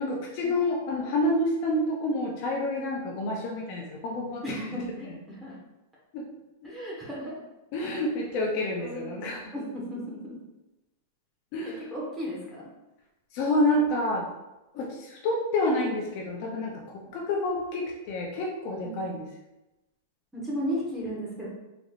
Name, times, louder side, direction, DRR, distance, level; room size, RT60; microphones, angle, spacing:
voice 1, 0.0-4.6 5.0-5.1 6.1-6.2 7.7-9.5 11.5-11.8 13.3-14.3 14.7-19.3, left 1 dB, 50° left, 0 dB, 0.6 m, -28 dB
voice 2, 4.4-5.6 6.6-7.4 8.8-9.2 9.5-10.4 11.9-12.7 18.8-19.2 20.3-21.5, equal, 5° right, -6 dB, 1.3 m, -35 dB
3.9 x 3.3 x 2.5 m, 0.99 s
supercardioid pair, 140°, 0 cm